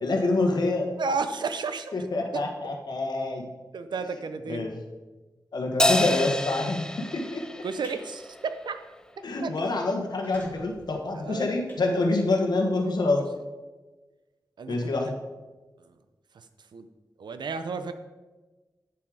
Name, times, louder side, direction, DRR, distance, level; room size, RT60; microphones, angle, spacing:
voice 1, 0.0-0.9 1.9-3.4 4.5-4.7 5.5-7.4 9.2-13.2 14.7-15.1, left 2 dB, 70° left, 2 dB, 1.4 m, -26 dB
voice 2, 1.0-1.9 2.3-2.4 3.7-4.6 7.6-8.8 9.4-9.5 11.1-11.6 12.7-12.9 14.6-14.9 16.3-16.5 16.7-16.9 17.2-17.9, right 4 dB, 85° right, 10 dB, 0.7 m, -32 dB
Crash cymbal, 5.8-8.5, left 1 dB, 10° left, 0.4 m, -27 dB
sound 1, 7.5-8.0 8.5-8.7 9.1-9.2 9.4-9.5 10.0-12.6, equal, 25° left, 1.9 m, -46 dB
8.6 x 7.3 x 4.8 m, 1.2 s
wide cardioid pair, 120°, 7 cm